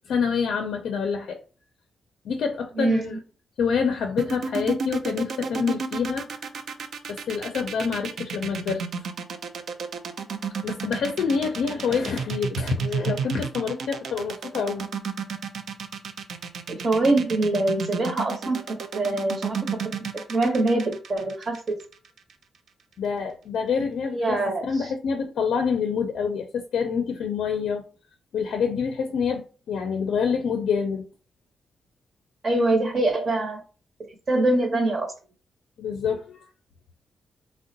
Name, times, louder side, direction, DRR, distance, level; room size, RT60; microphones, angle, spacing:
voice 1, 0.1-1.4 2.2-3.2 3.6-6.3 7.1-8.8 10.6-14.8 23.0-27.8 28.3-31.0 35.8-36.4, left 6 dB, 80° left, 0.4 m, -27 dB
voice 2, 2.8-3.1 16.7-19.8 20.3-21.8 24.1-24.9 32.4-33.6 34.3-35.1, right 2 dB, 40° right, 0.7 m, -24 dB
sound 1, 4.2-22.3, right 6 dB, 65° right, 0.4 m, -32 dB
3.5 x 2.0 x 2.6 m
wide cardioid pair, 130°, 0 cm